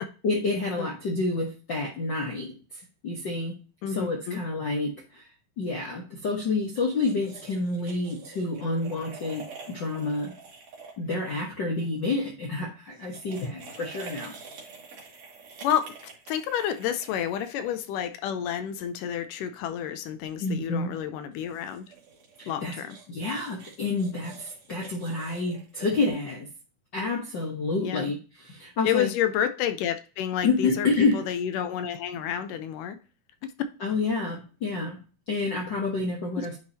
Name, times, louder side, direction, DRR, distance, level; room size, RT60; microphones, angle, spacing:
voice 1, 0.2-3.5 3.9-5.3 5.6-10.3 11.0-14.3 20.4-20.9 22.4-22.7 23.1-26.5 26.9-29.1 30.4-31.2 33.8-35.0 35.3-36.6, left 3 dB, 55° left, -2 dB, 1.3 m, -29 dB
voice 2, 3.8-4.4 15.6-15.9 16.3-21.9 22.5-23.0 27.8-28.1 28.8-30.9 31.1-33.0 33.4-33.5 36.4-36.5, left 9 dB, 80° left, 9 dB, 2.3 m, -29 dB
sound 1, 6.7-11.9 12.9-18.1 21.3-26.1, right 4 dB, 55° right, 2.9 m, -47 dB
10.5 x 4.8 x 2.8 m, 0.34 s
omnidirectional pair, 3.8 m